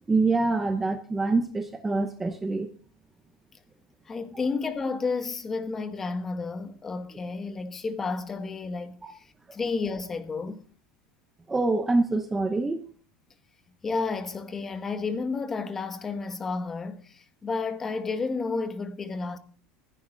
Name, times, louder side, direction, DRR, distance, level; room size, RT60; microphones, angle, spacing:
voice 1, 0.1-2.7 9.0-9.1 11.5-12.8, right 3 dB, 10° right, 0.9 m, -25 dB
voice 2, 4.1-10.6 13.8-19.4, left 4 dB, 15° left, 1.3 m, -31 dB
16.0 x 15.0 x 4.0 m
cardioid pair, 175°, 2 cm